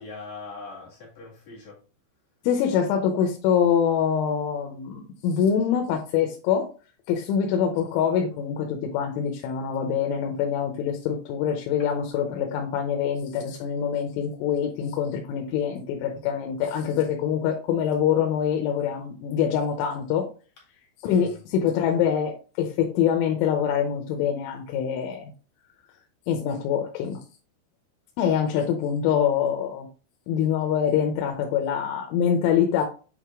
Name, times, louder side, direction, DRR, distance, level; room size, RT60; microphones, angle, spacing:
voice 1, 0.0-1.8 21.0-21.3, left 3 dB, 45° left, 2.8 m, -41 dB
voice 2, 2.4-6.7 7.1-20.3 21.0-25.3 26.3-27.2 28.2-29.9 30.3-32.9, left 8 dB, 90° left, 3.3 m, -25 dB
8.6 x 3.1 x 3.6 m
omnidirectional pair, 5.5 m